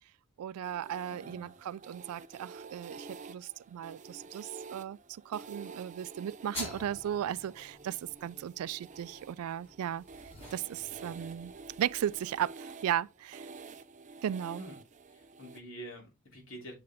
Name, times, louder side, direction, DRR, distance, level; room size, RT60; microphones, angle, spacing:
voice 1, 0.4-5.0 5.3-10.0 10.5-13.5 14.2-14.7, right 10 dB, 85° right, 0.3 m, -36 dB
sound 1, 0.6-15.6, right 4 dB, 35° right, 0.5 m, -50 dB
voice 2, 1.1-1.5 14.6-14.7 15.1-16.7, right 1 dB, 65° left, 3.0 m, -47 dB
sound 2, 6.5-12.5, left 1 dB, 30° left, 4.2 m, -48 dB
7.3 x 4.7 x 3.4 m
head